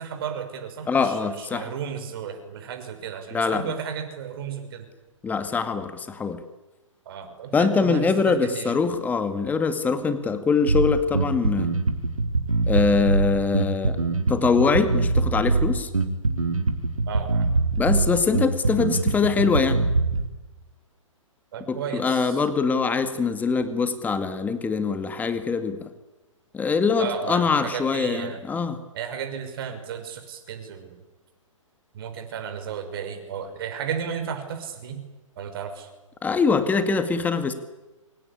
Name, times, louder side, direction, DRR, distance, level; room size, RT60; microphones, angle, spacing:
voice 1, 0.0-4.9 7.1-8.8 17.1-17.5 21.5-22.4 27.0-28.4 28.9-31.0 31.9-35.0 35.4-35.9, right 7 dB, 45° right, 7 dB, 5.8 m, -34 dB
voice 2, 0.9-1.7 3.3-3.6 5.2-6.4 7.5-11.7 12.7-14.0 14.3-15.9 17.8-19.8 21.7-25.9 26.5-28.8 36.2-37.5, left 5 dB, 10° left, 10 dB, 2.1 m, -23 dB
Bass guitar, 10.7-20.3, right 3 dB, 75° right, 4.0 m, -23 dB
27.5 x 25.0 x 8.6 m, 1.1 s
figure-of-eight pair, 125°, 17 cm